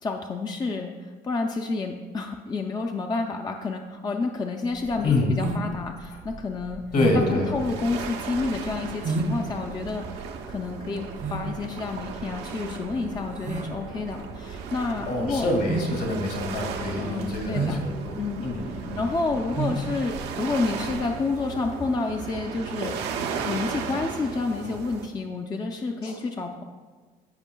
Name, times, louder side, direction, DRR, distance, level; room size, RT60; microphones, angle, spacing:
voice 1, 0.0-6.8 7.1-15.5 17.0-17.8 18.2-18.4 18.7-22.9 23.4-26.6, left 3 dB, 25° left, 3 dB, 0.5 m, -30 dB
sound 1, 4.8-21.1, right 3 dB, 45° right, 0.7 m, -33 dB
voice 2, 5.0-5.7 6.1-6.2 6.9-7.6 15.1-19.1 19.4-19.5 26.0-26.2, left 2 dB, 60° left, 0 dB, 2.0 m, -27 dB
sound 2, 7.1-25.1, right 6 dB, 85° right, 0.8 m, -36 dB
14.5 x 5.3 x 2.2 m, 1.5 s
cardioid pair, 110°, 17 cm